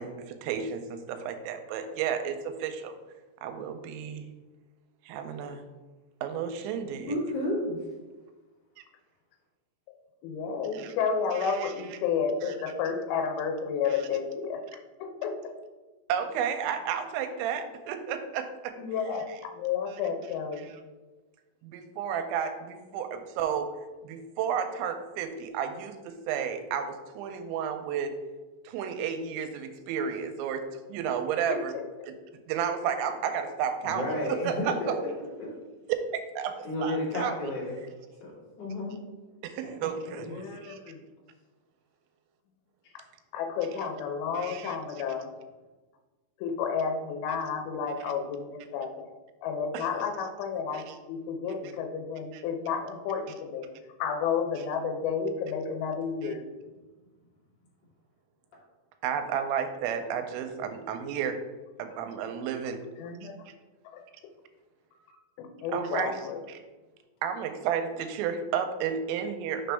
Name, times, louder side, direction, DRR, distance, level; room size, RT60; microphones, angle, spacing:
voice 1, 0.0-2.9 3.4-4.3 5.1-5.6 6.2-7.2 10.7-10.9 11.3-11.7 12.4-12.5 13.9-14.0 16.1-18.7 19.9-20.0 20.6-20.8 21.6-23.7 24.0-28.1 28.7-30.6 30.9-31.8 32.0-32.2 32.5-35.0 35.9-37.5 39.4-40.8 44.3-44.8 49.7-49.9 50.7-51.0 52.3-52.4 59.0-61.4 61.8-62.8 65.7-66.2 66.5-66.6 67.2-69.7, right 7 dB, 85° right, 7 dB, 2.9 m, -32 dB
voice 2, 7.1-7.8 33.8-35.5 36.6-37.8 38.2-38.3 38.6-38.9 39.6-39.9, left 1 dB, 45° left, -6 dB, 1.5 m, -31 dB
voice 3, 10.2-14.6 15.0-15.5 18.8-19.3 19.6-20.7 31.5-31.8 40.2-41.0 42.9-43.0 43.3-45.3 46.4-49.1 49.4-53.7 54.0-56.4 63.0-63.4 63.9-64.0 65.4-66.4, left 6 dB, 80° left, 4 dB, 2.8 m, -31 dB
6.3 x 5.2 x 3.3 m, 1.2 s
omnidirectional pair, 5.2 m